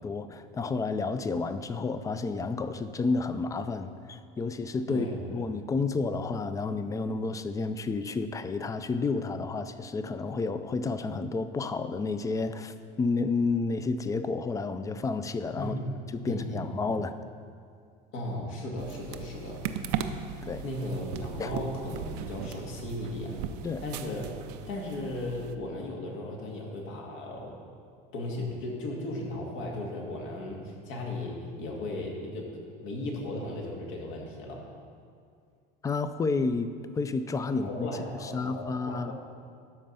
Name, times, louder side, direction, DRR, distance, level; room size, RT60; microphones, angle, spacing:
voice 1, 0.0-5.1 5.3-15.7 16.1-17.1 20.4-20.6 21.4-21.5 23.6-23.8 35.8-37.9 38.2-39.1, left 4 dB, 15° left, 11 dB, 0.4 m, -30 dB
voice 2, 4.9-5.4 15.6-15.9 16.2-16.9 18.1-19.7 20.6-23.4 23.8-24.3 24.7-27.6 28.1-34.7 37.5-39.1, left 1 dB, 70° left, -1 dB, 2.1 m, -36 dB
sound 1, 18.8-25.5, right 8 dB, 85° right, 0.6 m, -38 dB
12.5 x 4.6 x 5.5 m, 2.3 s
supercardioid pair, 125°, 20 cm